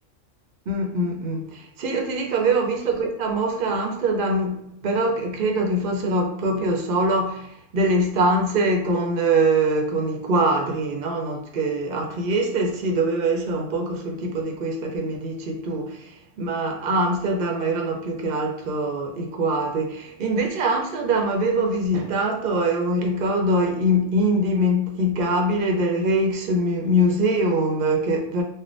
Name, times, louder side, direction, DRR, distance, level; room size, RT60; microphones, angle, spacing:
voice 1, 0.7-7.5 7.7-16.1 16.4-28.4, right 1 dB, 50° right, 2 dB, 0.7 m, -23 dB
3.3 x 2.2 x 2.5 m, 0.74 s
omnidirectional pair, 1.2 m